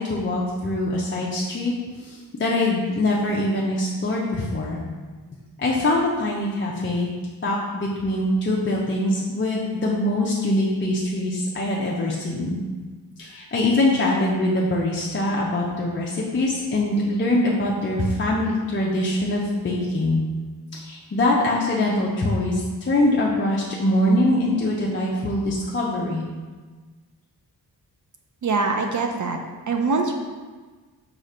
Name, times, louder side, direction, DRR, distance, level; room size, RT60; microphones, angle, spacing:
voice 1, 0.0-4.8 5.6-7.1 7.4-12.6 13.2-20.2 20.7-26.2, left 1 dB, 30° left, -4 dB, 0.5 m, -23 dB
voice 2, 28.4-29.4 29.7-30.2, right 3 dB, 50° right, 3 dB, 0.4 m, -23 dB
5.0 x 2.4 x 4.2 m, 1.4 s
wide cardioid pair, 110°, 39 cm